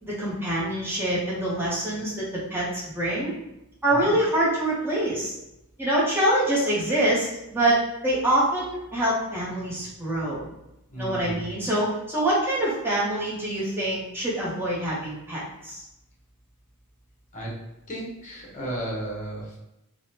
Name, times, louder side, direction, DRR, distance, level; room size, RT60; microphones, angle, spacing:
voice 1, 0.0-3.3 3.8-5.3 5.8-10.4 11.0-15.8, right 1 dB, 10° right, -7 dB, 0.8 m, -25 dB
voice 2, 10.9-11.4 17.3-17.5 17.9-19.6, right 1 dB, 35° left, -3 dB, 0.9 m, -34 dB
3.4 x 2.1 x 2.7 m, 0.89 s
head